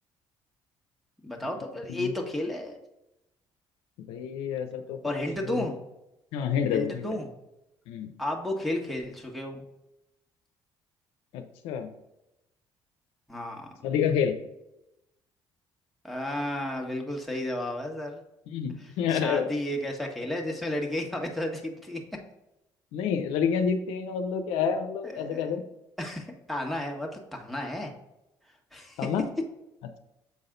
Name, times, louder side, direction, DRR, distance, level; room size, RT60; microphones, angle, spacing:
voice 1, 1.2-2.8 5.0-5.8 6.7-7.3 8.2-9.6 13.3-13.7 16.0-18.2 19.1-22.0 25.0-25.6 26.0-27.9 28.7-29.0, left 1 dB, ahead, 0 dB, 1.6 m, -32 dB
voice 2, 4.0-5.0 5.4-5.7 6.3-7.1 7.9-8.1 11.3-11.9 13.8-14.4 18.5-19.5 22.9-25.6 29.0-29.3, left 7 dB, 85° left, 6 dB, 0.7 m, -28 dB
7.3 x 4.0 x 3.9 m, 0.89 s
supercardioid pair, 75°, 10 cm